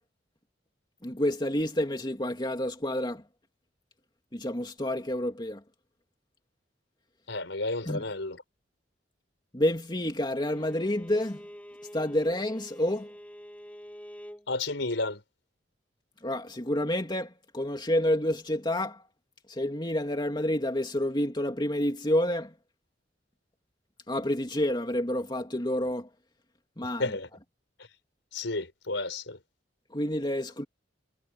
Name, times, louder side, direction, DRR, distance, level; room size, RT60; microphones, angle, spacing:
voice 1, 1.0-3.2 4.3-5.6 7.9-8.0 9.5-11.4 11.9-13.1 16.2-19.0 19.5-22.5 24.1-26.1 26.8-27.1 29.9-30.6, left 1 dB, 25° left, 2.6 m, -29 dB
voice 2, 7.3-8.4 14.5-15.2 26.8-27.3 28.3-29.4, left 2 dB, 90° left, 4.8 m, -32 dB
Bowed string instrument, 10.4-14.5, equal, 10° left, 7.5 m, -47 dB
head